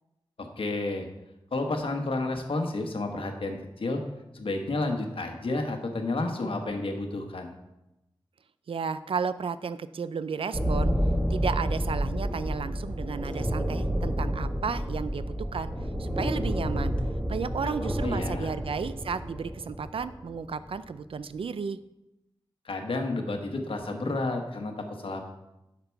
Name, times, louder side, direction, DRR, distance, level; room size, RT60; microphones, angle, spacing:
voice 1, 0.4-1.1 1.5-4.0 4.3-7.5 17.6-17.7 18.0-18.5 22.6-25.3, left 2 dB, 80° left, 4 dB, 1.3 m, -31 dB
voice 2, 8.7-10.9 11.3-15.7 16.0-16.9 17.3-21.8, right 5 dB, 85° right, 13 dB, 0.4 m, -33 dB
sound 1, 10.5-20.8, equal, 10° right, 1.3 m, -30 dB
Car / Engine, 11.8-18.4, equal, 15° left, 1.0 m, -44 dB
10.5 x 5.9 x 4.6 m, 0.93 s
wide cardioid pair, 70°, 9 cm